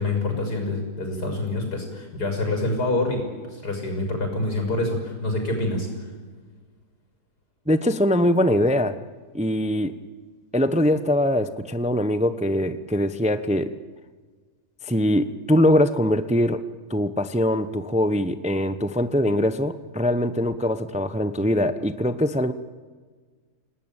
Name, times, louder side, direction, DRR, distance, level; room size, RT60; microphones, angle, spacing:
voice 1, 0.0-3.2 3.5-5.9, left 2 dB, 85° left, 4 dB, 6.6 m, -26 dB
voice 2, 7.7-9.0 9.3-10.0 10.5-13.7 14.8-16.6 16.9-22.5, left 1 dB, 5° right, 12 dB, 0.7 m, -22 dB
29.0 x 18.5 x 9.1 m, 1.5 s
omnidirectional pair, 1.7 m